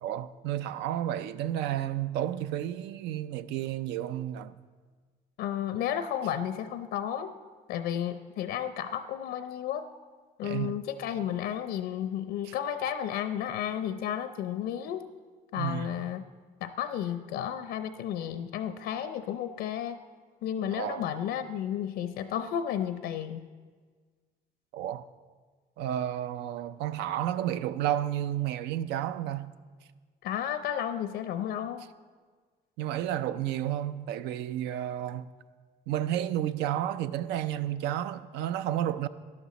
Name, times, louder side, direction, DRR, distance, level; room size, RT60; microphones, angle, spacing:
voice 1, 0.0-4.6 10.4-10.8 12.4-12.5 15.5-16.0 20.7-21.1 24.7-25.1 25.8-29.5 32.8-35.3 35.9-39.1, right 11 dB, 85° right, 0.5 m, -31 dB
voice 2, 5.4-7.3 7.7-9.9 10.4-15.0 15.5-16.2 16.6-20.0 20.4-23.5 30.2-31.9, left 10 dB, 85° left, 0.6 m, -32 dB
12.0 x 11.5 x 4.1 m
cardioid pair, 110°, 17 cm